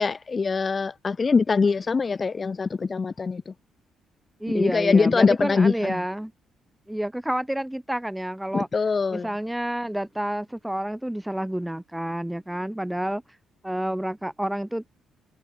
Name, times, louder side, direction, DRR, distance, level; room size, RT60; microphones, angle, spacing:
voice 1, 0.0-3.5 4.5-6.0 8.5-9.3, left 4 dB, 35° left, 2.5 m, -23 dB
voice 2, 4.4-6.3 6.9-8.7 9.1-13.2 13.6-15.0, right 1 dB, 5° right, 1.1 m, -29 dB
cardioid pair, 90°, 0 cm